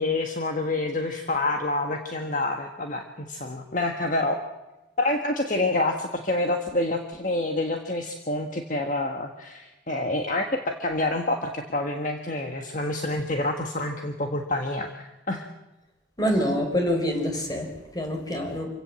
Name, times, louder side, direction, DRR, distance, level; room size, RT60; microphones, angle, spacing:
voice 1, 0.0-4.4 5.0-15.5 16.3-16.4, left 2 dB, 45° left, 3 dB, 1.6 m, -27 dB
voice 2, 16.2-17.7 17.9-18.7, equal, 20° left, 4 dB, 4.6 m, -25 dB
27.0 x 16.5 x 7.6 m, 1.0 s
head